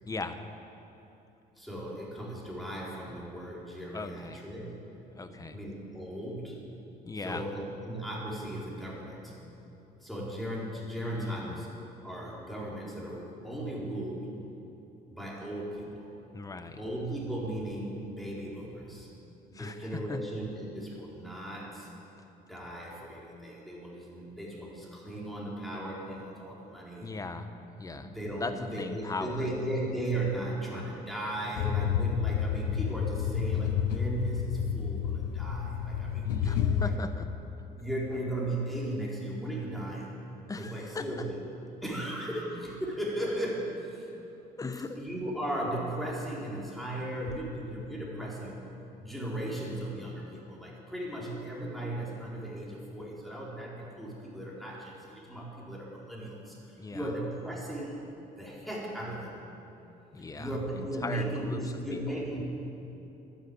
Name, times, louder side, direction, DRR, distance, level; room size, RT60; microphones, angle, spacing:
voice 1, 0.1-0.4 3.9-4.4 5.1-5.6 7.0-7.4 11.1-11.6 16.3-16.8 19.5-20.2 27.0-27.5 27.8-29.5 36.2-37.3 40.5-41.1 44.6-45.0 56.8-57.1 60.1-61.6 61.9-62.2, left 3 dB, 20° left, 8 dB, 1.0 m, -38 dB
voice 2, 1.6-4.8 5.3-6.6 7.2-9.3 10.0-14.3 15.1-16.1 16.8-19.1 19.5-21.9 22.5-27.1 28.0-36.9 37.7-40.1 40.6-41.4 41.8-44.1 45.0-48.6 49.0-58.0 58.4-59.3 60.3-62.4, right 1 dB, ahead, -5 dB, 4.1 m, -36 dB
sound 1, 31.6-37.0, left 8 dB, 90° left, 0.7 m, -30 dB
12.0 x 10.5 x 8.6 m, 3.0 s
cardioid pair, 110°, 17 cm